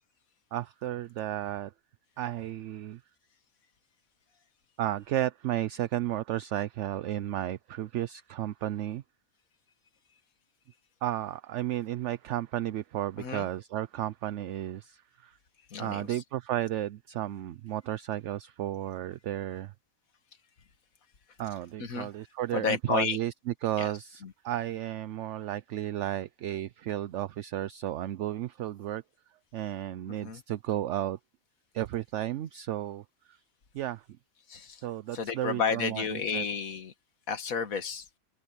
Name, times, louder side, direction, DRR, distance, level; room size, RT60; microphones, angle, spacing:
voice 1, 0.5-1.7 2.2-3.0 4.8-9.0 11.0-15.4 15.8-19.7 21.4-29.0 29.5-31.2 31.7-33.4 33.7-34.0 34.8-36.4, right 13 dB, 65° right, 0.8 m, -33 dB
voice 2, 13.2-13.5 15.7-16.2 21.8-22.1 22.5-23.2 23.8-24.3 30.1-30.4 34.5-34.8 35.1-36.9 37.3-38.1, left 6 dB, 80° left, 1.9 m, -32 dB
omnidirectional pair, 1.5 m